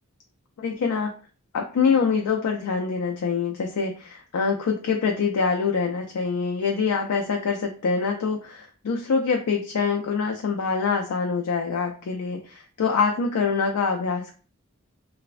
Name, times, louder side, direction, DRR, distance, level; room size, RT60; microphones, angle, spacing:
voice 1, 0.6-1.2 1.5-14.3, left 5 dB, 80° left, 2 dB, 0.4 m, -25 dB
3.2 x 2.1 x 2.4 m, 0.38 s
head